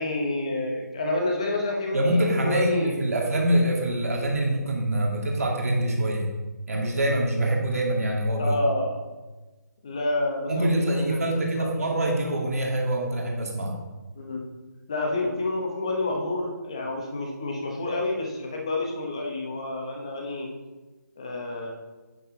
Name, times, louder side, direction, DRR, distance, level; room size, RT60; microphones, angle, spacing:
voice 1, 0.0-3.1 8.4-9.0 9.8-11.2 11.6-11.7 14.2-14.5 14.9-20.5 21.2-21.7, left 2 dB, 20° left, 1 dB, 0.8 m, -29 dB
voice 2, 1.9-6.3 6.7-8.6 10.5-13.8, right 1 dB, 50° right, -1 dB, 2.1 m, -25 dB
9.0 x 6.5 x 3.7 m, 1.2 s
hypercardioid pair, 180°, 10 cm